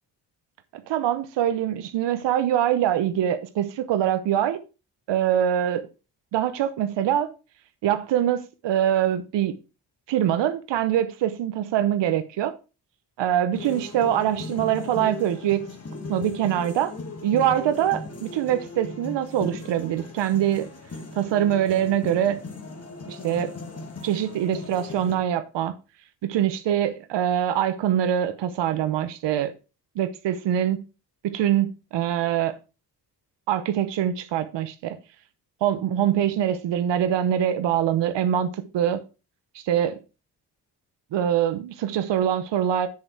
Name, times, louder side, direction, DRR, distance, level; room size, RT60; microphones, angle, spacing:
voice 1, 0.7-4.6 5.1-5.9 6.3-7.3 7.8-9.6 10.1-12.5 13.2-15.6 16.1-16.9 17.2-20.7 21.2-22.4 23.1-23.5 24.0-25.7 26.2-29.5 30.0-30.8 31.2-32.6 33.5-35.0 35.6-39.0 39.5-40.0 41.1-42.9, right 10 dB, 90° right, 0.9 m, -24 dB
sound 1, 13.5-25.2, left 2 dB, 35° left, 2.1 m, -37 dB
7.8 x 7.5 x 4.5 m
cardioid pair, 90°, 41 cm